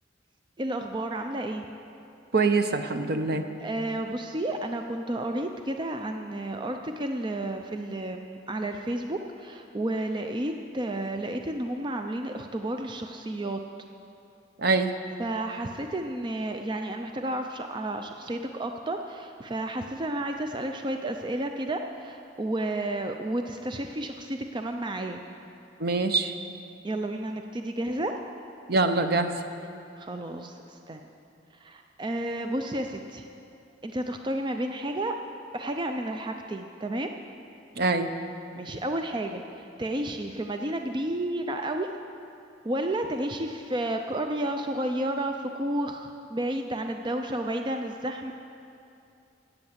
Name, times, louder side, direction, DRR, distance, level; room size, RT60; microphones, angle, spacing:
voice 1, 0.6-1.7 3.6-13.6 15.2-25.2 26.8-28.1 30.0-31.1 31.6-33.2 33.8-35.1 35.5-37.1 38.6-39.4 39.8-41.9 42.6-48.3, right 1 dB, 25° right, 5 dB, 0.5 m, -31 dB
voice 2, 2.3-3.5 14.6-14.9 25.8-26.3 28.7-29.3 37.8-38.1, right 3 dB, 55° right, 8 dB, 0.8 m, -24 dB
13.0 x 8.9 x 7.9 m, 2.6 s
head